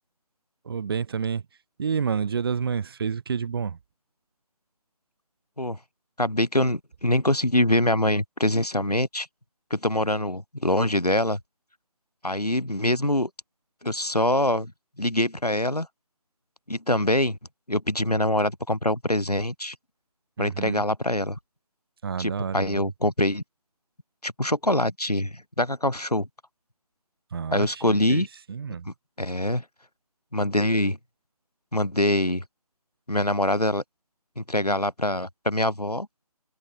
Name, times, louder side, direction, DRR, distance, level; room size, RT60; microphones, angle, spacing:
voice 1, 0.6-1.4 1.8-3.8 20.4-20.9 22.0-22.9 27.3-28.9, right 6 dB, 40° right, 7.0 m, -29 dB
voice 2, 6.2-9.3 9.7-11.4 12.2-13.3 13.8-14.7 15.0-15.9 16.7-17.4 17.7-19.7 20.4-21.4 22.2-23.4 24.2-26.3 27.5-28.3 28.8-29.6 30.3-31.0 31.7-32.4 33.1-33.8 34.4-36.1, left 1 dB, 85° left, 4.7 m, -24 dB
figure-of-eight pair, 150°, 19 cm